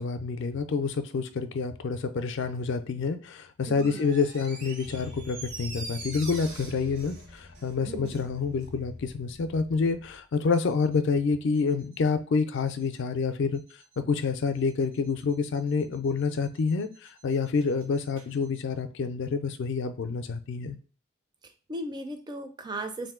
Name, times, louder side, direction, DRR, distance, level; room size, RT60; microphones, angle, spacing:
voice 1, 0.0-13.6 14.0-20.8, left 5 dB, 60° left, 0.4 m, -28 dB
voice 2, 3.7-4.1 7.8-8.2 21.4-23.1, right 1 dB, 20° right, 0.4 m, -37 dB
Door, 3.7-8.3 8.6-8.7, right 3 dB, 60° right, 1.1 m, -43 dB
sound 1, 4.8-10.2 10.5-11.0 11.5-12.0 12.5-13.0 13.5-14.0 14.5-18.6, left 2 dB, 85° right, 1.4 m, -48 dB
3.7 x 2.6 x 3.6 m
head